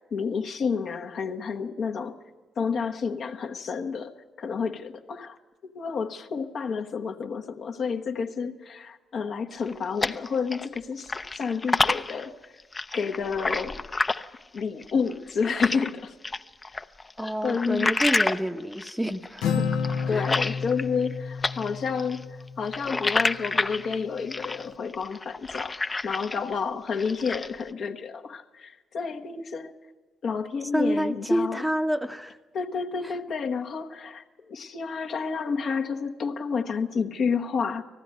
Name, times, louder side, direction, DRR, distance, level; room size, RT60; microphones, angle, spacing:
voice 1, 0.1-2.2 2.6-5.4 5.6-12.3 12.9-13.8 14.5-16.1 17.4-17.9 20.1-25.7 26.0-29.7 30.2-31.6 32.5-37.8, left 5 dB, 65° left, 1.2 m, -30 dB
sound 1, 9.5-10.8 11.1-15.9 16.2-21.1 21.4-26.5 26.9-27.6, left 3 dB, 30° left, 0.7 m, -29 dB
voice 2, 17.2-19.7 20.1-20.2 30.7-32.4 33.0-33.1, equal, 5° right, 0.9 m, -28 dB
Acoustic guitar, 19.4-23.1, left 6 dB, 85° left, 1.0 m, -30 dB
18.5 x 15.5 x 9.4 m
supercardioid pair, 60°, 0 cm